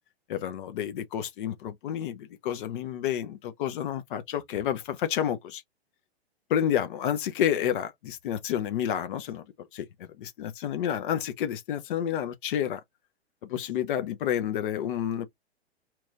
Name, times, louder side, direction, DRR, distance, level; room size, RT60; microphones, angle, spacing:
voice 1, 0.3-5.6 6.5-9.4 9.7-12.8 13.4-15.3, left 10 dB, 50° left, 0.8 m, -30 dB
3.0 x 2.4 x 3.0 m
figure-of-eight pair, 115°, 32 cm